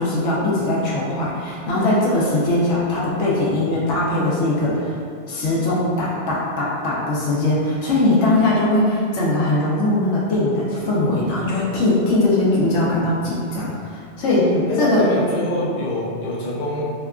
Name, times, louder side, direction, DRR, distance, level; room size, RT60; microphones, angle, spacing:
voice 1, 0.0-5.0 5.3-14.4 14.8-15.1, left 2 dB, 80° left, -6 dB, 1.0 m, -20 dB
voice 2, 14.4-16.9, left 1 dB, 60° left, -7 dB, 0.7 m, -25 dB
2.8 x 2.4 x 2.2 m, 2.2 s
omnidirectional pair, 1.2 m